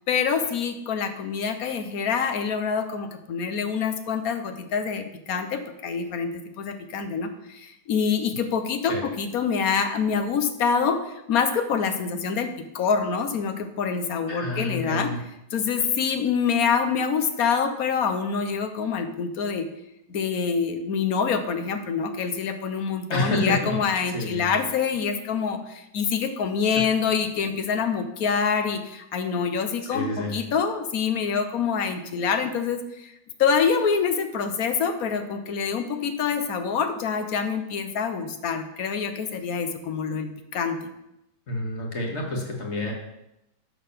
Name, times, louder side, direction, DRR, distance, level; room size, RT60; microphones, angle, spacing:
voice 1, 0.1-6.3 6.6-12.5 12.7-15.1 15.5-19.7 20.1-33.1 33.4-40.8, left 6 dB, 60° left, 8 dB, 1.2 m, -26 dB
voice 2, 14.3-15.2 23.1-23.8 24.1-24.5 26.8-26.9 29.9-30.4 41.5-42.9, left 2 dB, 40° left, 0 dB, 2.0 m, -28 dB
11.0 x 3.9 x 6.7 m, 0.86 s
omnidirectional pair, 1.9 m